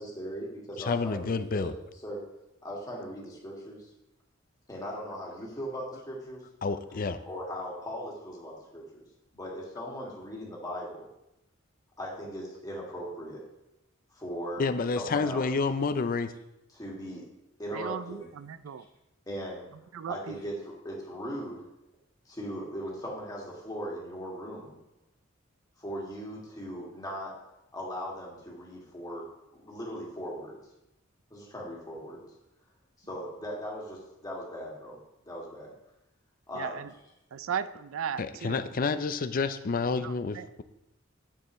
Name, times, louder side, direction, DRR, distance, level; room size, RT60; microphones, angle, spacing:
voice 1, 0.0-1.7 2.0-2.2 2.6-3.9 4.7-6.4 7.2-9.1 9.3-11.1 12.0-13.4 14.1-14.6 15.0-15.5 16.7-17.3 17.6-18.3 19.3-19.6 20.1-21.6 22.3-24.8 25.8-27.3 27.7-30.6 31.3-32.2 33.0-35.0 35.3-35.7 36.5-36.8, equal, 20° left, -3 dB, 2.2 m, -39 dB
voice 2, 0.8-1.7 6.6-7.2 14.6-16.3 38.2-40.6, left 4 dB, 45° left, 11 dB, 0.5 m, -29 dB
voice 3, 17.7-18.8 19.9-20.4 36.5-36.9 37.3-38.6 40.0-40.6, right 7 dB, 90° right, 14 dB, 0.4 m, -36 dB
10.0 x 6.8 x 3.1 m, 0.89 s
head